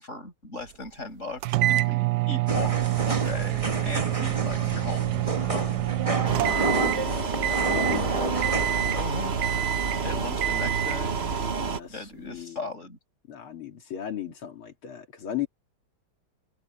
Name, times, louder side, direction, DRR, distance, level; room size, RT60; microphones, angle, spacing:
voice 1, 0.0-2.7 3.1-5.3 8.9-9.3 10.0-11.1 11.9-13.0, left 2 dB, 35° left, 6.9 m, -37 dB
sound 1, 1.4-7.1 7.4-8.0 8.4-9.1 9.4-10.0 10.4-11.0, right 16 dB, 75° right, 0.9 m, -27 dB
sound 2, 2.5-9.0, right 2 dB, 20° right, 1.4 m, -30 dB
sound 3, 6.2-11.8, right 5 dB, 35° right, 1.2 m, -29 dB
voice 2, 6.5-8.2 9.9-10.2 11.5-12.6 13.3-15.5, left 9 dB, 85° left, 3.3 m, -37 dB
omnidirectional pair, 2.3 m